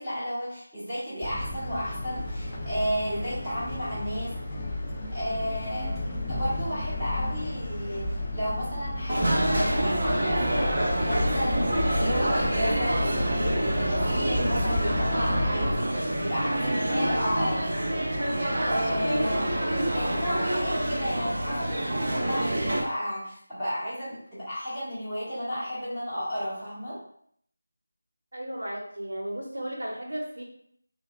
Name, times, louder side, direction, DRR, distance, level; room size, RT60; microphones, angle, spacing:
voice 1, 0.0-4.3 5.1-17.8 18.6-19.6 19.9-27.0, equal, 10° right, -18 dB, 1.1 m, -33 dB
sound 1, 1.2-15.8, left 1 dB, 15° left, 0.4 m, -31 dB
sound 2, 9.1-22.8, right 1 dB, 45° right, 0.6 m, -27 dB
voice 2, 28.3-30.4, right 1 dB, 90° right, -1 dB, 0.9 m, -34 dB
3.0 x 2.3 x 2.3 m, 0.66 s
figure-of-eight pair, 170°, 0 cm